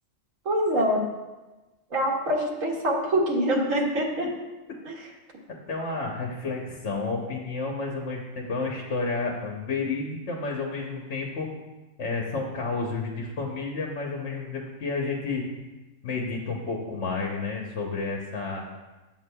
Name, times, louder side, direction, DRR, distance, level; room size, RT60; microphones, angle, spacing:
voice 1, 0.4-1.0 1.9-4.3 4.8-4.9, equal, 90° right, -3 dB, 1.7 m, -24 dB
voice 2, 5.5-11.5 12.0-15.5 16.0-18.6, left 3 dB, 65° left, -1 dB, 1.2 m, -31 dB
11.0 x 7.4 x 2.2 m, 1.1 s
omnidirectional pair, 1.3 m